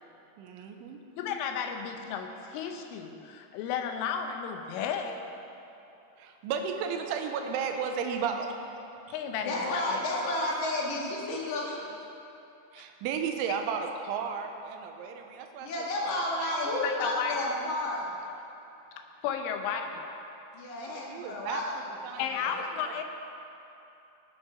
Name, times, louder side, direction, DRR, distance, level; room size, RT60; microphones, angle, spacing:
voice 1, 0.4-1.0 6.2-8.5 12.7-15.7 15.9-16.5 20.9-21.6 22.0-23.0, right 6 dB, 80° right, 4 dB, 3.1 m, -34 dB
voice 2, 1.2-5.2 9.1-10.0 16.8-17.4 19.2-20.1 22.2-23.0, left 7 dB, 80° left, 5 dB, 3.3 m, -33 dB
voice 3, 9.4-11.9 15.6-18.1 20.5-21.7 22.0-22.2, left 1 dB, 55° left, -4 dB, 2.4 m, -31 dB
18.5 x 6.5 x 5.7 m, 2.8 s
omnidirectional pair, 5.8 m